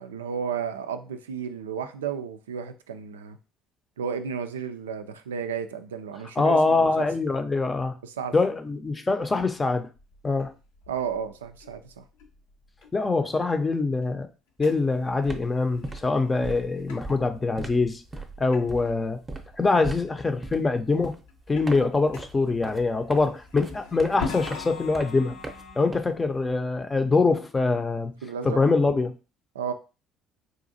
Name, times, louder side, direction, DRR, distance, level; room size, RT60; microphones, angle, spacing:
voice 1, 0.0-3.4 4.0-7.1 8.0-8.4 10.9-12.0 19.7-19.8 28.2-28.6 29.5-29.7, right 7 dB, 90° right, 0.3 m, -33 dB
voice 2, 6.4-8.0 8.3-9.9 10.2-10.5 12.9-14.3 14.6-18.0 18.4-19.2 19.6-21.1 21.5-25.4 25.8-28.1 28.4-29.1, left 3 dB, 25° left, 0.5 m, -24 dB
sound 1, 10.0-13.5 13.9-14.1 14.6-14.9 15.2-17.1 17.7-17.8 18.5-18.6 18.9-19.0 19.5-19.6 20.0-20.7 21.1-25.9, left 5 dB, 80° left, 0.6 m, -42 dB
sound 2, 14.7-14.8 15.1-26.5, right 2 dB, 25° right, 0.6 m, -40 dB
4.0 x 2.5 x 2.6 m
hypercardioid pair, 60°, 0 cm